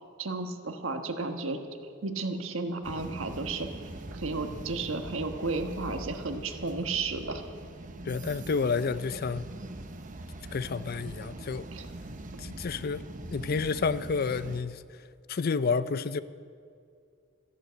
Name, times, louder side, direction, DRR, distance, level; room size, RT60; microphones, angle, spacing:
voice 1, 0.2-1.6 2.0-3.7 4.1-7.4 11.7-11.9, right 3 dB, 85° right, 1.4 m, -33 dB
sound 1, 2.8-14.6, right 2 dB, 40° right, 0.9 m, -42 dB
voice 2, 8.0-9.5 10.5-11.7 12.4-15.0 15.3-16.2, left 5 dB, 50° left, 0.5 m, -30 dB
14.5 x 11.0 x 7.9 m
head